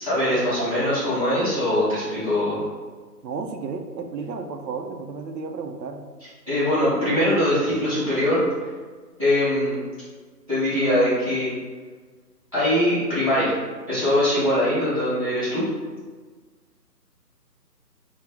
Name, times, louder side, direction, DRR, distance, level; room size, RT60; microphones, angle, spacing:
voice 1, 0.0-2.6 6.5-8.4 9.2-9.8 10.5-11.5 12.5-13.6 13.9-15.6, left 1 dB, 20° right, -14 dB, 1.0 m, -22 dB
voice 2, 3.2-6.0, right 4 dB, 80° right, 6 dB, 0.6 m, -32 dB
3.4 x 2.1 x 3.4 m, 1.4 s
hypercardioid pair, 170°, 50 cm